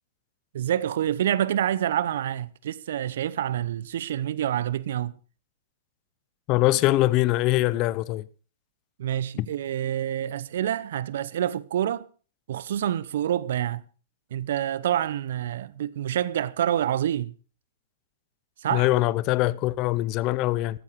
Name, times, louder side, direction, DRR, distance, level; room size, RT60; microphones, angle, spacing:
voice 1, 0.5-5.1 9.0-12.1 12.5-13.8 14.3-17.3 18.6-18.9, right 11 dB, 70° right, 0.8 m, -27 dB
voice 2, 6.5-8.2 9.4-9.5 18.7-20.8, left 17 dB, 40° left, 0.7 m, -23 dB
14.0 x 13.5 x 4.7 m
hypercardioid pair, 125°, 0 cm